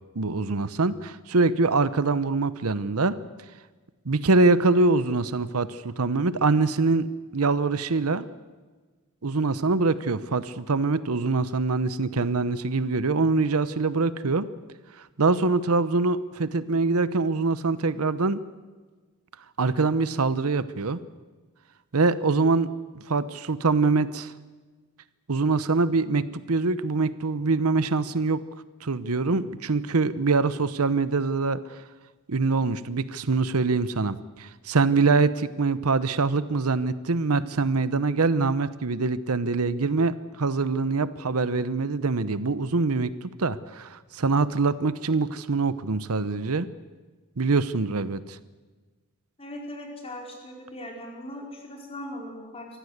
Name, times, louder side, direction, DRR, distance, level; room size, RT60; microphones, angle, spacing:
voice 1, 0.1-3.2 4.0-7.1 7.3-8.3 9.2-14.5 15.0-18.4 19.6-21.0 21.9-22.7 22.9-24.3 25.3-28.4 28.8-31.8 32.3-46.7 47.4-48.4, right 3 dB, 80° right, 15 dB, 0.9 m, -24 dB
voice 2, 49.4-52.7, left 1 dB, 25° left, 0 dB, 4.7 m, -39 dB
24.0 x 15.0 x 8.1 m, 1.3 s
head